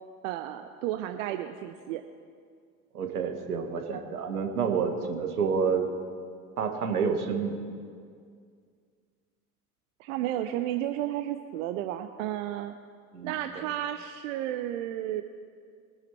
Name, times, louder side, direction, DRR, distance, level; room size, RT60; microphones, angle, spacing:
voice 1, 0.2-2.0 10.0-12.7 13.2-15.2, right 12 dB, 55° right, 8 dB, 0.8 m, -32 dB
voice 2, 2.9-5.9 6.6-7.5 13.1-13.4, right 6 dB, 75° right, 4 dB, 1.7 m, -28 dB
21.5 x 9.9 x 4.6 m, 2.1 s
figure-of-eight pair, 70°, 46 cm